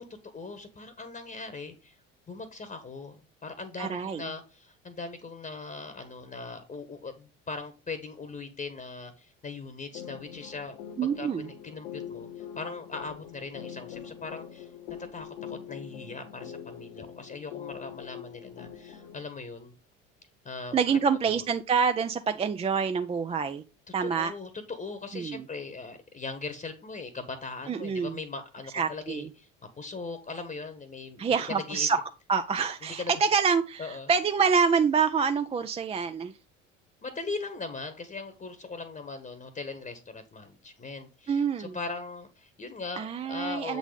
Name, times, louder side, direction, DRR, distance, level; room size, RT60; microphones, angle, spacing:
voice 1, 0.0-1.9 2.3-10.8 11.2-19.7 20.4-20.7 21.1-21.4 24.0-29.5 29.8-31.9 32.9-33.1 33.8-34.1 37.0-43.8, left 3 dB, 20° left, 1.1 m, -40 dB
voice 2, 3.8-4.3 11.0-11.5 20.7-23.6 23.9-24.3 25.1-25.4 27.7-28.2 28.7-29.3 31.2-32.0 32.3-36.3 41.3-41.8 43.0-43.8, right 6 dB, 15° right, 0.4 m, -26 dB
sound 1, 9.9-19.2, left 9 dB, 65° left, 1.2 m, -43 dB
8.0 x 4.1 x 5.0 m
figure-of-eight pair, 60°, 38 cm